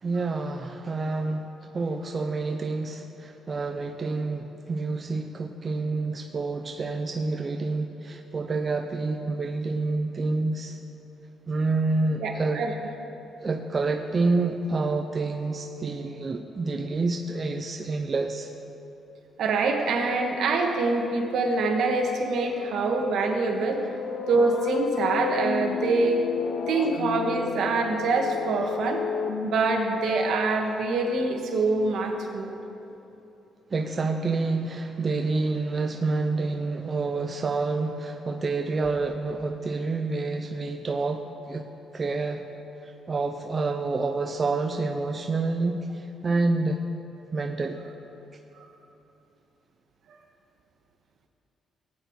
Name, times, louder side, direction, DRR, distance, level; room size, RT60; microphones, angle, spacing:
voice 1, 0.0-1.5 1.7-10.8 11.5-12.7 13.4-18.5 33.7-41.7 41.9-42.5 42.8-46.8 47.3-47.8, right 3 dB, 35° right, 4 dB, 0.7 m, -28 dB
voice 2, 12.2-12.7 19.4-23.9 24.3-26.3 26.7-29.0 29.4-32.6, right 3 dB, 70° right, 2 dB, 1.7 m, -25 dB
sound 1, 23.5-31.3, left 8 dB, 70° left, 0.5 m, -34 dB
17.0 x 9.1 x 4.8 m, 2.9 s
cardioid pair, 90°, 0 cm